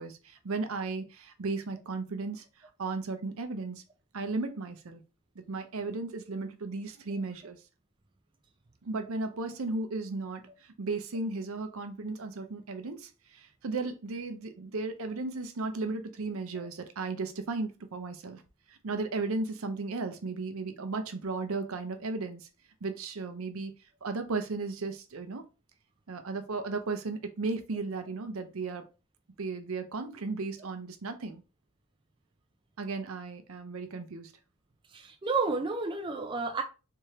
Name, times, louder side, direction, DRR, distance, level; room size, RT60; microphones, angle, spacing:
voice 1, 0.0-3.8 4.1-5.0 5.4-7.6 8.8-18.4 18.7-22.5 22.8-23.7 24.0-25.5 26.1-28.9 29.4-31.4 32.8-34.3, right 3 dB, 70° right, 0.6 m, -35 dB
voice 2, 34.9-36.6, right 4 dB, 20° right, 0.4 m, -31 dB
3.4 x 3.2 x 3.0 m
head